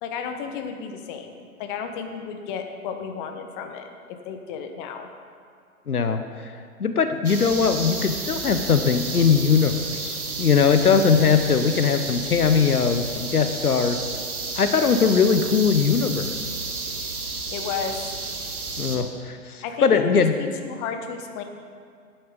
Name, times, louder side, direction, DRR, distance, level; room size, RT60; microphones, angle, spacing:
voice 1, 0.0-5.1 17.5-18.2 19.6-21.4, left 6 dB, 35° left, 6 dB, 1.2 m, -33 dB
voice 2, 5.9-6.2 6.8-14.0 14.6-16.4 18.8-20.3, left 6 dB, 90° left, 8 dB, 0.8 m, -20 dB
sound 1, 7.2-19.0, right 3 dB, 85° right, 1.8 m, -32 dB
11.5 x 8.9 x 5.1 m, 2.2 s
figure-of-eight pair, 115°, 44 cm